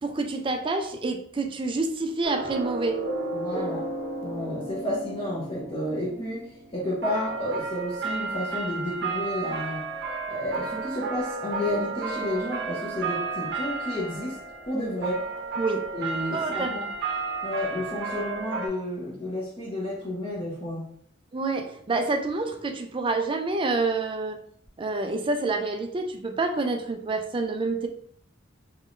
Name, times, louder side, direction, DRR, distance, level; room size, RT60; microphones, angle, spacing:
voice 1, 0.0-3.0 15.6-15.8 16.3-16.9 21.3-24.4 24.8-27.9, right 3 dB, 25° right, 6 dB, 0.4 m, -28 dB
sound 1, 2.2-18.7, right 3 dB, 60° right, 0.8 m, -33 dB
voice 2, 3.3-3.9 4.2-9.8 10.3-14.4 14.7-15.3 15.9-16.9 17.4-20.8, left 1 dB, 30° left, -9 dB, 1.0 m, -31 dB
3.7 x 3.0 x 2.5 m, 0.65 s
head